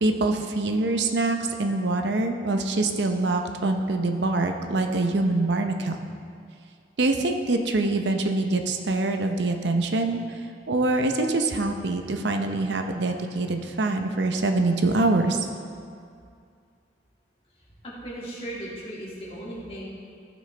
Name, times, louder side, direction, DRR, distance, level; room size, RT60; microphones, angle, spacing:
voice 1, 0.0-6.0 7.0-10.2 10.7-15.4, right 2 dB, 75° right, 5 dB, 0.7 m, -24 dB
voice 2, 17.8-19.9, right 1 dB, 35° left, -7 dB, 2.3 m, -36 dB
15.0 x 6.2 x 3.3 m, 2.3 s
head